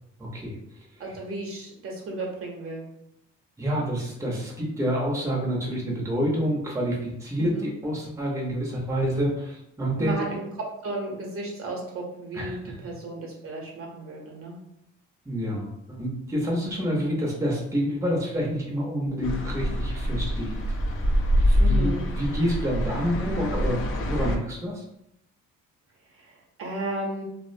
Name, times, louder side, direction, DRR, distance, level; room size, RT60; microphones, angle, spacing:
voice 1, 0.2-0.6 1.0-1.1 3.6-10.2 12.3-12.9 15.3-20.6 21.4-24.8, equal, 10° right, -3 dB, 0.6 m, -28 dB
voice 2, 1.0-2.8 7.4-7.7 10.0-14.6 21.6-22.0 26.6-27.2, right 2 dB, 50° right, -1 dB, 0.7 m, -34 dB
sound 1, 19.2-24.4, equal, 45° left, 0.4 m, -25 dB
2.4 x 2.0 x 2.5 m, 0.79 s
cardioid pair, 90°, 30 cm